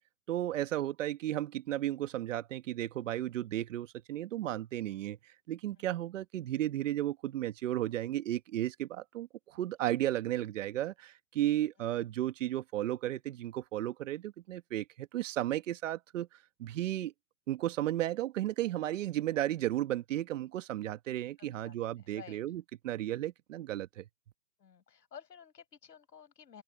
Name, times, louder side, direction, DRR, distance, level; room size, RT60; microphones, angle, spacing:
voice 1, 0.3-5.2 5.5-16.3 16.6-17.1 17.5-24.0, right 13 dB, 50° right, 1.7 m, -34 dB
voice 2, 21.4-22.4 24.6-26.6, left 8 dB, 75° left, 7.1 m, -54 dB
open air
hypercardioid pair, 140°, 49 cm